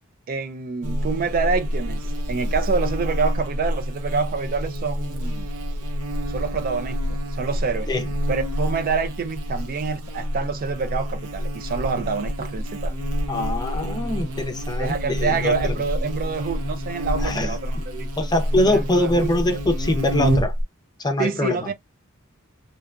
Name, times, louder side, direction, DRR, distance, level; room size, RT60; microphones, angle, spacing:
voice 1, 0.3-5.5 6.3-7.9 8.3-12.9 14.8-18.1 18.7-19.3 21.2-21.7, right 5 dB, 40° right, 0.3 m, -27 dB
Buzz, 0.8-20.6, equal, 85° right, 0.6 m, -27 dB
voice 2, 13.3-15.8 17.2-17.6 18.2-20.5 21.0-21.7, left 1 dB, 20° left, 0.5 m, -23 dB
2.8 x 2.2 x 2.4 m
head